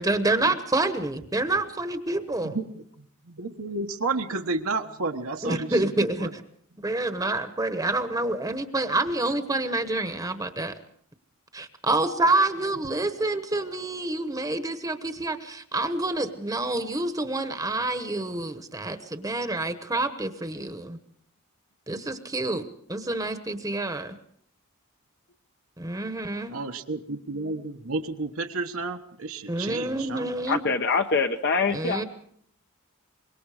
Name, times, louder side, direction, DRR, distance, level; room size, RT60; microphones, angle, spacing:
voice 1, 0.0-2.6 5.4-6.4 6.8-10.7 11.5-21.0 21.9-24.2 25.8-26.6 29.5-30.6 31.7-32.0, right 2 dB, 15° right, 1.1 m, -27 dB
voice 2, 2.4-5.8 6.2-6.3 26.5-30.3, right 3 dB, 75° right, 1.3 m, -31 dB
voice 3, 30.5-32.0, left 4 dB, 50° left, 0.9 m, -24 dB
25.0 x 22.0 x 5.0 m
head